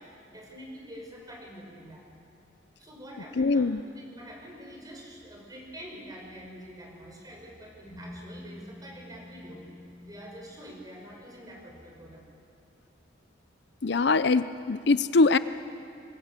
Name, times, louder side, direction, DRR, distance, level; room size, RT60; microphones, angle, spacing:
voice 1, 0.0-2.0 2.8-9.6 10.0-12.2, equal, 20° right, 0 dB, 5.5 m, -46 dB
voice 2, 3.4-3.8 13.8-15.4, left 3 dB, 60° left, 13 dB, 0.6 m, -22 dB
sound 1, 7.8-11.7, left 1 dB, 40° left, 5.8 m, -49 dB
28.5 x 21.0 x 8.2 m, 2.5 s
head